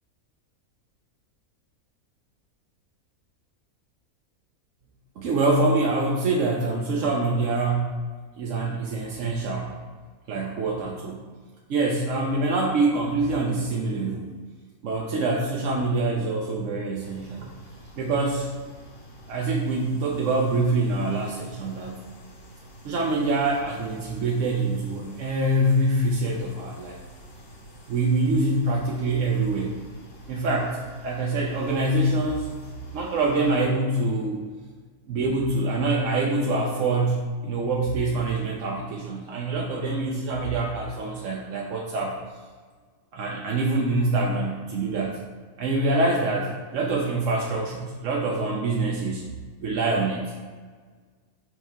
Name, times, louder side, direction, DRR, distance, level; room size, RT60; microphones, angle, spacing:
voice 1, 5.2-7.9 8.4-9.7 10.3-11.2 11.7-14.3 14.8-17.5 18.0-18.5 19.3-22.0 22.8-27.0 27.9-29.8 30.3-30.8 31.0-32.5 32.9-34.5 35.1-42.2 43.1-45.2 45.6-49.2 49.6-50.2, right 2 dB, 65° right, -2 dB, 1.0 m, -25 dB
sound 1, 17.0-33.5, equal, 65° left, 1.8 m, -48 dB
6.3 x 3.4 x 5.8 m, 1.5 s
omnidirectional pair, 1.6 m